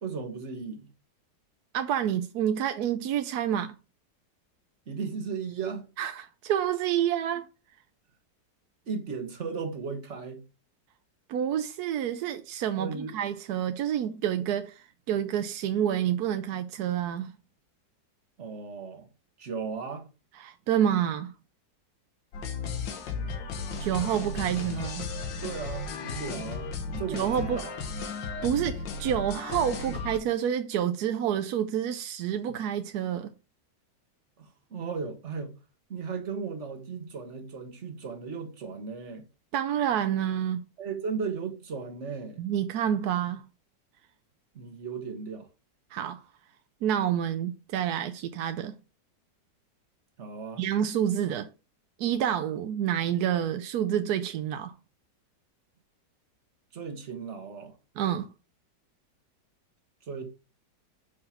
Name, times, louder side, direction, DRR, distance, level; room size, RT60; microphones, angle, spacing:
voice 1, 0.0-0.9 4.9-5.9 8.9-10.4 12.8-13.2 18.4-19.1 19.4-20.1 24.5-24.6 25.4-26.7 27.0-27.7 29.9-30.0 34.4-35.6 35.9-39.3 40.8-42.4 44.5-45.5 50.2-50.6 56.7-57.7 60.1-60.2, right 5 dB, 45° right, 1.4 m, -36 dB
voice 2, 1.7-3.7 6.0-7.5 11.3-17.3 20.4-21.3 23.8-25.1 26.9-27.6 28.4-33.3 39.5-40.6 42.4-43.4 45.9-46.2 46.8-48.7 50.6-51.5 52.0-54.7 58.0-58.3, right 10 dB, 70° right, 1.1 m, -28 dB
sound 1, 22.3-30.2, left 4 dB, 90° left, 1.8 m, -35 dB
6.2 x 4.9 x 5.7 m
omnidirectional pair, 1.9 m